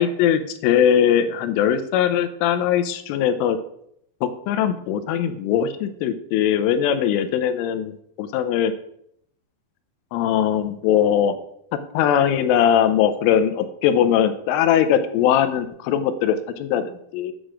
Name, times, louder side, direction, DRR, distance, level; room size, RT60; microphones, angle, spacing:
voice 1, 0.0-3.6 4.2-8.7 10.1-11.4 11.7-17.3, left 9 dB, 90° left, 10 dB, 3.3 m, -20 dB
10.0 x 6.4 x 6.2 m, 0.72 s
omnidirectional pair, 5.7 m